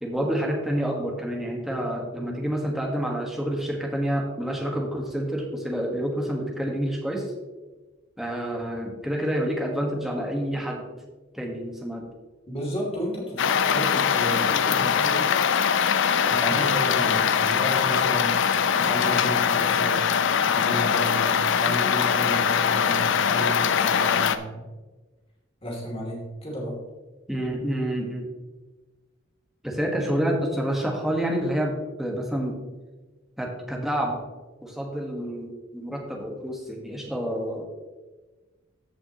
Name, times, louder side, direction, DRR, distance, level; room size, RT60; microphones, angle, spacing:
voice 1, 0.0-7.3 8.2-10.9 11.3-12.0 16.4-16.7 27.3-28.3 29.6-32.6 33.4-34.2 34.6-37.6, equal, ahead, -1 dB, 1.5 m, -28 dB
voice 2, 12.5-15.3 16.2-20.0 20.4-24.7 25.6-26.7, equal, 30° left, -3 dB, 2.8 m, -33 dB
sound 1, 13.4-24.4, left 7 dB, 65° left, 0.5 m, -22 dB
14.0 x 5.6 x 3.0 m, 1.2 s
head